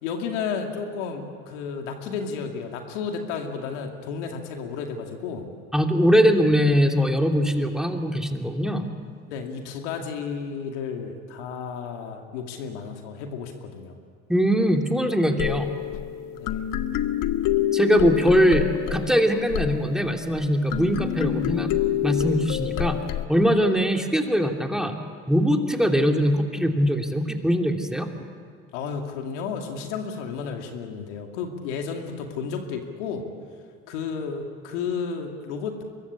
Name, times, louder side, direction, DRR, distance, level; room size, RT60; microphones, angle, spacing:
voice 1, 0.0-5.5 9.3-13.9 16.3-16.8 28.7-33.2 33.9-35.8, left 6 dB, 85° left, 4 dB, 2.5 m, -32 dB
voice 2, 5.7-8.9 14.3-15.7 17.7-21.7 22.0-23.0 23.3-25.0 25.3-28.1, equal, ahead, 3 dB, 2.9 m, -21 dB
sound 1, 15.4-23.3, left 12 dB, 65° left, 1.1 m, -27 dB
24.0 x 21.5 x 8.6 m, 2.1 s
hypercardioid pair, 65°, 35 cm